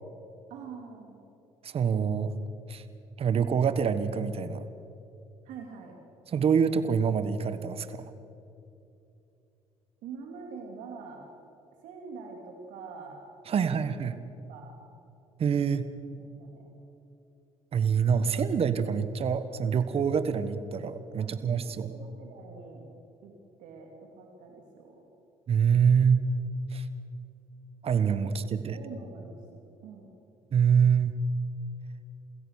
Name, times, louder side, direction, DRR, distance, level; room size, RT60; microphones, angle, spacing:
voice 1, 0.5-1.2 5.4-6.0 10.0-11.2 11.8-13.2 13.6-14.0 14.5-14.7 16.2-16.7 21.2-22.9 23.2-25.0 28.2-30.1, right 5 dB, 75° right, 1 dB, 2.8 m, -45 dB
voice 2, 1.6-2.3 2.7-2.8 3.2-4.6 6.3-8.0 13.5-14.2 15.4-15.9 17.7-21.9 25.5-26.2 26.7-26.8 27.8-28.8 30.5-31.2, right 7 dB, 50° right, 12 dB, 1.5 m, -25 dB
28.5 x 16.5 x 6.6 m, 2.7 s
supercardioid pair, 75°, 13 cm